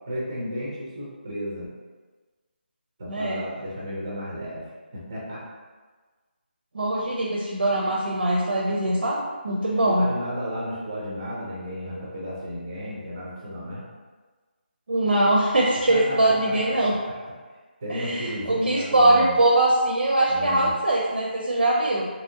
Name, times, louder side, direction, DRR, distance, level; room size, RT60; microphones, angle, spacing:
voice 1, 0.1-1.7 3.0-4.6 4.9-5.4 9.6-13.8 15.9-17.2 17.8-19.4 20.3-20.7, equal, 20° right, -6 dB, 0.5 m, -33 dB
voice 2, 3.1-3.4 6.7-10.1 14.9-16.9 17.9-22.1, right 1 dB, 75° right, -3 dB, 0.5 m, -22 dB
2.8 x 2.7 x 2.7 m, 1.4 s
figure-of-eight pair, 175°, 6 cm